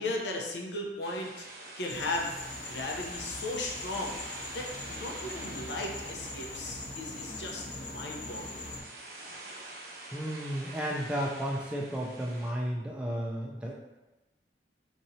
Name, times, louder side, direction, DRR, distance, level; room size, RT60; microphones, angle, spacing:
voice 1, 0.0-1.5 1.8-4.2 4.5-8.7, left 2 dB, 85° left, 0 dB, 0.6 m, -36 dB
sound 1, 1.0-12.5, right 2 dB, 60° right, 0.7 m, -46 dB
sound 2, 1.9-8.8, left 2 dB, 45° left, 0.7 m, -42 dB
voice 2, 10.1-13.7, equal, 5° right, -3 dB, 0.3 m, -33 dB
3.9 x 2.9 x 2.7 m, 1.0 s
head